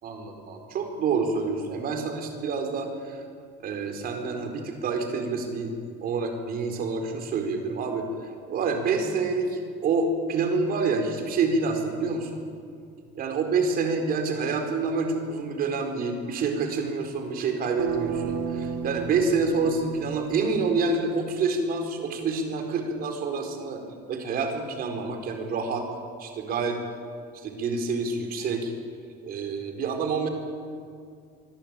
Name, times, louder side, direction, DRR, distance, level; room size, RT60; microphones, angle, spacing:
voice 1, 0.0-3.2 3.6-5.7 6.0-8.1 8.5-12.4 13.1-23.8 24.1-25.9 26.2-26.8 27.3-28.7 29.2-30.3, right 4 dB, 45° right, 4 dB, 4.6 m, -27 dB
sound 1, 17.8-20.8, right 7 dB, 70° right, 2.1 m, -32 dB
24.5 x 22.0 x 9.1 m, 2.2 s
cardioid pair, 155°, 21 cm